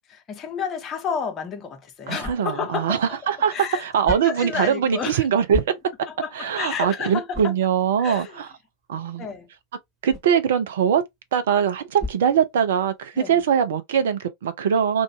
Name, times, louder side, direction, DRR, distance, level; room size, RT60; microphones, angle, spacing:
voice 1, 0.1-5.3 6.1-7.6 8.0-8.4 9.2-9.5 13.2-13.4, left 6 dB, 30° left, 0.8 m, -31 dB
sound 1, 1.3-13.1, left 3 dB, 5° right, 1.3 m, -41 dB
voice 2, 2.1-5.6 6.3-8.5 8.9-9.3 10.0-11.0 11.3-15.0, right 8 dB, 60° right, 0.6 m, -22 dB
2.6 x 2.4 x 2.8 m
figure-of-eight pair, 90°, 0 cm